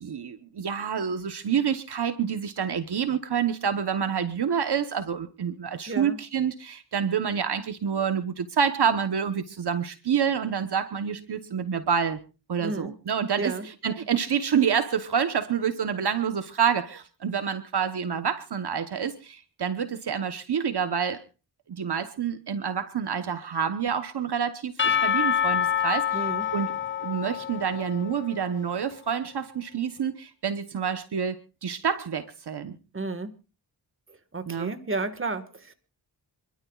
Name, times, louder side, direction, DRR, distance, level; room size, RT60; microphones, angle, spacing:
voice 1, 0.0-12.2 12.5-21.2 21.7-26.7 27.0-32.8 34.5-34.7, right 7 dB, 70° right, 10 dB, 1.0 m, -28 dB
voice 2, 5.9-6.2 12.6-12.9 13.4-13.6 26.1-26.4 32.9-33.3 34.3-35.7, right 3 dB, 30° right, 10 dB, 1.6 m, -32 dB
Percussion / Church bell, 24.8-28.6, left 8 dB, 30° left, 0.6 m, -27 dB
28.0 x 12.5 x 2.4 m, 0.31 s
cardioid pair, 55°, 42 cm